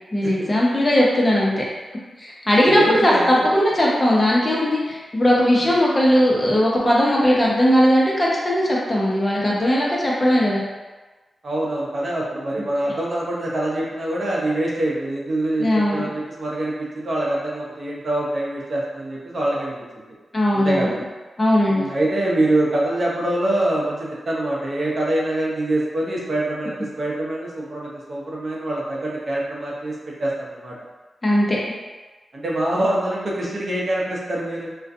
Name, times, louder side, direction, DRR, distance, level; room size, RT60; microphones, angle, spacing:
voice 1, 0.1-1.6 2.2-10.6 15.6-16.0 20.3-20.9 21.4-21.8 31.2-31.6, equal, 30° left, -4 dB, 0.7 m, -18 dB
voice 2, 2.6-3.4 5.6-5.7 11.4-19.8 20.5-21.0 21.7-30.8 32.3-34.7, right 1 dB, 55° right, -4 dB, 0.6 m, -25 dB
2.4 x 2.2 x 2.6 m, 1.2 s
cardioid pair, 55°, 0 cm